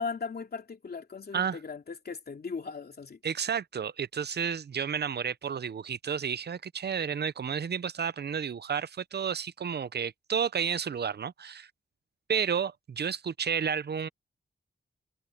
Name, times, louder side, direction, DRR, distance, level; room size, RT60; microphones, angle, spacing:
voice 1, 0.0-3.2, left 5 dB, 50° left, 3.0 m, -37 dB
voice 2, 3.2-11.7 12.3-14.1, right 7 dB, 55° right, 0.7 m, -31 dB
wide cardioid pair, 105°, 20 cm